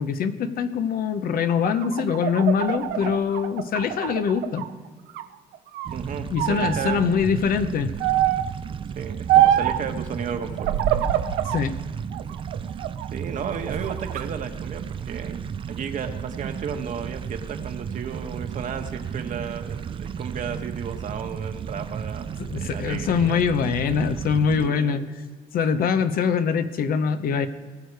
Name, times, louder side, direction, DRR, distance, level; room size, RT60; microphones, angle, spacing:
voice 1, 0.0-4.7 6.3-7.9 11.4-11.8 22.4-25.0 25.5-27.5, left 6 dB, 60° left, 10 dB, 0.9 m, -23 dB
sound 1, 1.5-4.7 5.1-6.0 6.4-7.0 8.0-8.5 9.3-9.8 10.6-11.6 12.1-13.1 13.5-14.2, right 12 dB, 85° right, 0.7 m, -24 dB
sound 2, 5.9-24.7, right 7 dB, 30° right, 0.4 m, -33 dB
voice 2, 5.9-7.3 9.0-10.7 13.1-15.4 15.7-23.4 24.6-25.0, right 7 dB, 50° right, 6 dB, 1.3 m, -34 dB
19.5 x 6.5 x 4.8 m, 1.5 s
cardioid pair, 110°, 17 cm